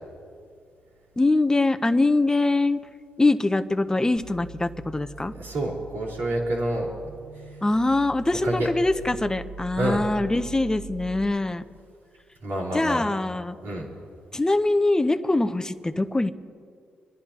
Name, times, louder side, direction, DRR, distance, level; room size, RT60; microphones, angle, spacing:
voice 1, 1.2-2.8 3.2-5.3 7.6-11.6 12.7-13.6 14.3-16.3, left 2 dB, 15° left, 10 dB, 0.7 m, -23 dB
sound 1, 4.2-11.3, right 3 dB, 45° right, 1.4 m, -43 dB
voice 2, 5.3-6.9 7.4-7.5 8.3-8.7 9.8-10.0 12.4-13.1 13.6-13.9, right 1 dB, 85° right, -9 dB, 3.5 m, -28 dB
30.0 x 11.0 x 2.9 m, 2.3 s
supercardioid pair, 60°, 4 cm